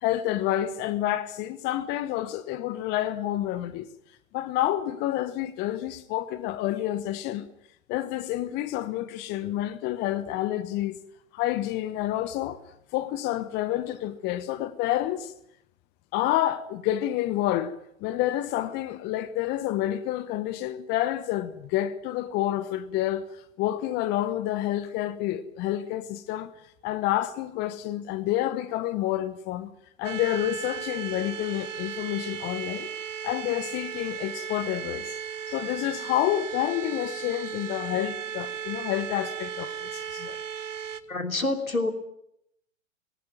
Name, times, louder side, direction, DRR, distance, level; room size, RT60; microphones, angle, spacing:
voice 1, 0.0-3.9 4.3-7.5 7.9-11.0 11.3-12.6 12.9-15.3 16.1-23.2 23.6-26.5 26.8-29.7 30.0-32.9 33.2-35.2 35.5-40.4, left 13 dB, 25° left, 1.1 m, -29 dB
sound 1, 30.0-41.0, right 8 dB, 65° right, 1.2 m, -36 dB
voice 2, 41.1-41.9, left 2 dB, 85° left, 3.1 m, -27 dB
19.5 x 18.5 x 9.3 m
figure-of-eight pair, 110°, 41 cm